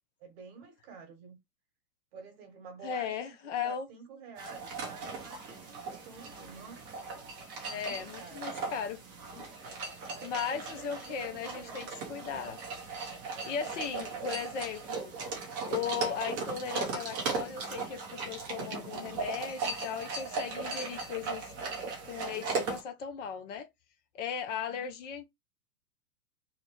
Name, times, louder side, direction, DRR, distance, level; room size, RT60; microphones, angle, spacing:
voice 1, 0.2-1.4 2.1-3.1 3.4-7.1 7.6-8.5 10.1-12.1 13.3-14.4 22.3-22.6 24.7-24.9, right 6 dB, 35° right, 1.3 m, -50 dB
voice 2, 2.8-3.9 7.7-9.0 9.4-9.9 10.2-12.6 13.5-15.1 15.7-21.5 22.0-23.7 24.1-25.2, left 7 dB, 45° left, 0.7 m, -37 dB
sound 1, 4.4-22.8, right 4 dB, 15° right, 0.4 m, -38 dB
2.9 x 2.4 x 2.9 m
hypercardioid pair, 140°, 50 cm